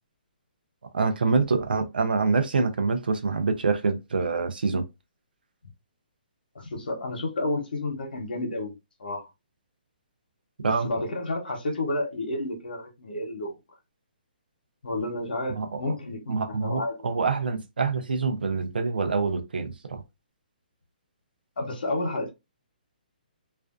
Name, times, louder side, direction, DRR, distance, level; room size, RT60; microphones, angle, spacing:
voice 1, 0.9-4.8 10.6-10.9 15.5-15.9 16.3-20.0, right 4 dB, 85° right, 0.6 m, -26 dB
voice 2, 6.5-8.7 9.0-9.3 10.6-13.6 14.8-17.0 21.6-22.3, left 2 dB, 80° left, 0.8 m, -31 dB
2.5 x 2.2 x 2.4 m
hypercardioid pair, 150°, 5 cm